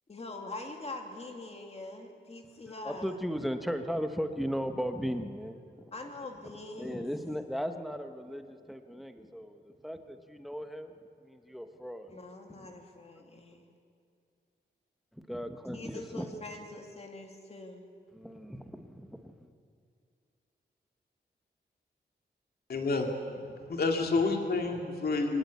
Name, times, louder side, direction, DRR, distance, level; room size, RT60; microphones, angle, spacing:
voice 1, 0.1-3.2 5.9-7.4 12.1-13.7 15.7-17.9, left 2 dB, 35° left, 3 dB, 2.4 m, -44 dB
voice 2, 2.8-5.6 6.8-10.9 11.2-12.2 15.3-16.3 18.1-19.5, equal, ahead, 6 dB, 1.2 m, -36 dB
voice 3, 22.7-23.1 23.7-25.4, left 3 dB, 60° left, 3 dB, 2.5 m, -29 dB
24.0 x 19.5 x 8.4 m, 2.3 s
wide cardioid pair, 175°, 18 cm